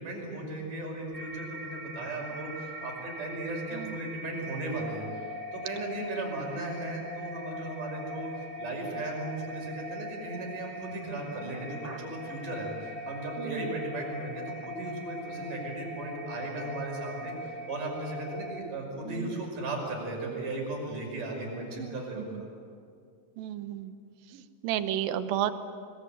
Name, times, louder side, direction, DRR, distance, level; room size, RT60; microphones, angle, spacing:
voice 1, 0.0-22.5, right 2 dB, 60° right, 1 dB, 7.1 m, -36 dB
sound 1, 1.1-18.6, equal, 40° right, 0.8 m, -41 dB
voice 2, 13.4-13.8 19.0-19.4 21.8-21.9 22.2-22.4 23.4-23.9 24.3-25.5, right 11 dB, 80° right, 10 dB, 2.7 m, -33 dB
29.0 x 21.0 x 8.9 m, 2.2 s
omnidirectional pair, 4.2 m